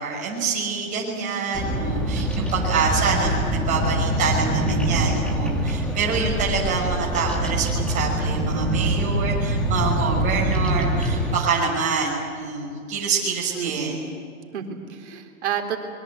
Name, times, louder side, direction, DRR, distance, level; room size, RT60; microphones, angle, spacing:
voice 1, 0.0-13.9, right 5 dB, 20° right, -4 dB, 6.1 m, -26 dB
Bird vocalization bird call bird song, 1.5-11.4, right 1 dB, ahead, 1.5 m, -24 dB
voice 2, 13.5-14.0 14.5-15.8, right 8 dB, 50° right, 3 dB, 3.7 m, -30 dB
25.5 x 22.5 x 8.5 m, 2.2 s
hypercardioid pair, 155°, 42 cm